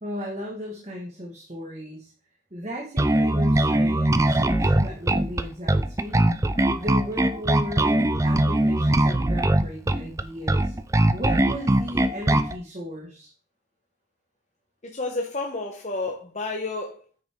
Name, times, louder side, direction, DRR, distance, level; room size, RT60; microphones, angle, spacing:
voice 1, 0.0-2.1 2.5-6.2 6.7-10.7 11.1-13.3, left 1 dB, 35° right, 1.6 m, -36 dB
Bass guitar, 3.0-12.6, right 1 dB, 15° right, 0.4 m, -21 dB
voice 2, 14.8-17.2, left 3 dB, 40° left, 1.0 m, -31 dB
9.2 x 6.1 x 3.7 m
head